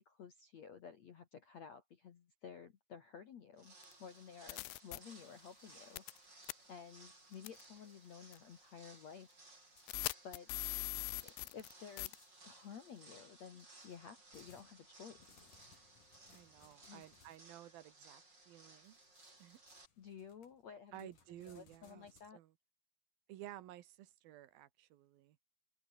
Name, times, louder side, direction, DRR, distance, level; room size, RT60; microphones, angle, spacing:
voice 1, 0.0-6.4 6.7-9.5 10.2-10.5 11.2-12.2 12.4-15.2 16.8-17.0 20.0-21.1 21.4-22.4, left 7 dB, 60° left, 1.8 m, -54 dB
sound 1, 3.5-19.9, right 2 dB, 20° right, 6.8 m, -61 dB
sound 2, 3.8-3.9 4.5-5.0 6.0-6.2 6.5-6.6 7.5-7.6 8.3-8.4 9.9-11.7 12.0-12.2, left 22 dB, 80° left, 2.5 m, -40 dB
sound 3, 5.3-7.1 7.3-8.2 8.5-8.6 9.8-9.9 10.5-11.1 11.3-11.4 12.0-12.7 13.4-17.5 18.8-22.3, left 6 dB, 45° left, 5.3 m, -69 dB
voice 2, 16.3-19.0 19.4-19.6 20.9-22.1 22.3-22.5 23.3-25.4, right 14 dB, 70° right, 2.4 m, -54 dB
open air
omnidirectional pair, 5.6 m